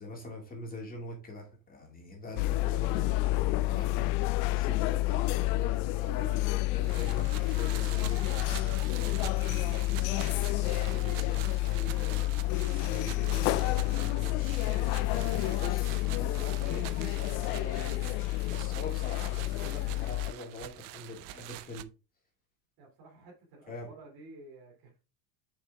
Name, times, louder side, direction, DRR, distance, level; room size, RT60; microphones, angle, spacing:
voice 1, 0.0-4.1 4.5-6.4 6.7-21.8 23.7-23.9, left 2 dB, 20° left, 2.3 m, -43 dB
sound 1, 2.4-20.3, left 18 dB, 75° left, 0.6 m, -29 dB
voice 2, 2.8-3.7 22.8-25.0, right 2 dB, 50° right, 3.0 m, -52 dB
sound 2, 6.8-21.8, right 16 dB, 70° right, 0.7 m, -45 dB
6.6 x 5.5 x 3.5 m
cardioid pair, 150°, 46 cm